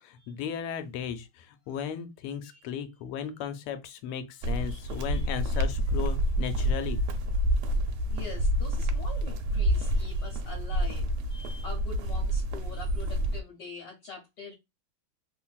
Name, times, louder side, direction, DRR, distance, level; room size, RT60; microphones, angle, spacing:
voice 1, 0.0-7.0, left 8 dB, 90° left, 1.5 m, -36 dB
sound 1, 4.4-13.4, equal, 90° right, 1.5 m, -28 dB
voice 2, 4.7-5.3 8.1-14.5, left 4 dB, 65° left, 1.2 m, -44 dB
3.2 x 2.5 x 2.3 m
omnidirectional pair, 2.3 m